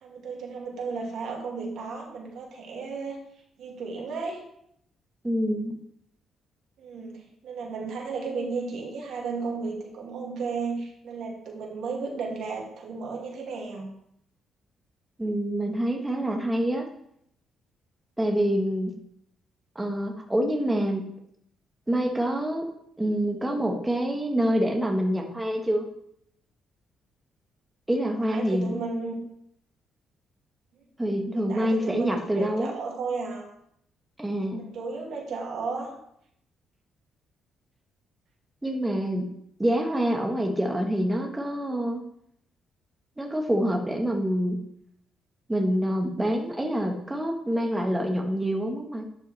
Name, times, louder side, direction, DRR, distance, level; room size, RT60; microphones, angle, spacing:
voice 1, 0.0-3.2 3.6-4.4 6.8-13.9 28.2-29.2 31.3-33.4 34.5-35.9, right 4 dB, 75° right, -1 dB, 2.1 m, -34 dB
voice 2, 5.2-5.8 15.2-16.9 18.2-19.0 19.7-21.1 21.9-22.7 23.0-25.9 27.9-28.9 31.0-32.8 34.2-34.6 38.6-39.3 39.6-42.0 43.2-44.6 45.5-49.0, equal, 10° right, 2 dB, 1.1 m, -26 dB
11.0 x 5.5 x 3.2 m, 0.73 s
cardioid pair, 90°, 0 cm